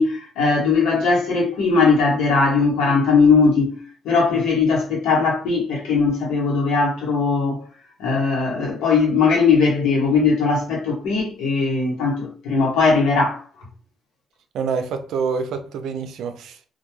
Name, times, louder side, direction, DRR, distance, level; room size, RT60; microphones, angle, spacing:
voice 1, 0.0-3.8 4.0-7.6 8.0-13.4, left 4 dB, 90° left, 1.0 m, -19 dB
voice 2, 14.5-16.7, right 5 dB, 80° right, 0.4 m, -26 dB
2.3 x 2.2 x 3.0 m
cardioid pair, 90°, 0 cm